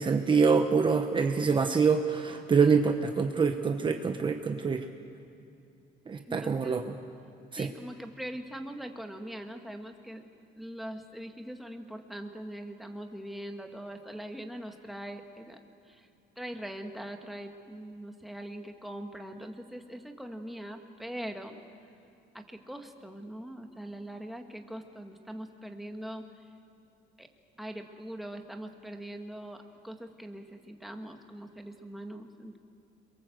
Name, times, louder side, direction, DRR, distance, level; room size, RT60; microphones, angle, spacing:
voice 1, 0.0-4.9 6.1-6.9 7.5-7.7, right 5 dB, 25° right, 5 dB, 1.0 m, -25 dB
voice 2, 6.3-6.8 7.6-10.2 10.6-15.6 15.9-16.1 16.4-21.5 22.3-26.3 27.2-27.3 27.6-32.6, right 1 dB, ahead, 4 dB, 1.6 m, -42 dB
27.0 x 23.0 x 7.8 m, 2.5 s
cardioid pair, 140°, 18 cm